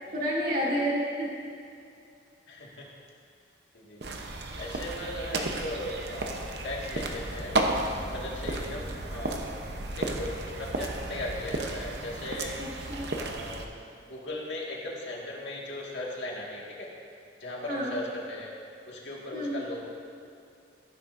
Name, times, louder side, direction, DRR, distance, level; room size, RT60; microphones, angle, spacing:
voice 1, 0.1-1.3 12.6-13.1 17.7-18.0 19.3-19.6, equal, 45° right, -6 dB, 2.4 m, -30 dB
voice 2, 2.5-2.9 3.7-4.2 4.6-7.6 7.9-9.6 10.0-12.6 13.1-13.8 14.1-16.9 17.4-18.5 18.9-19.9, left 1 dB, 75° left, -3 dB, 1.9 m, -38 dB
sound 1, 4.0-13.7, right 2 dB, 60° right, 0.8 m, -33 dB
sound 2, 6.9-12.2, equal, 20° left, 1.2 m, -47 dB
14.5 x 11.0 x 2.6 m, 2.5 s
head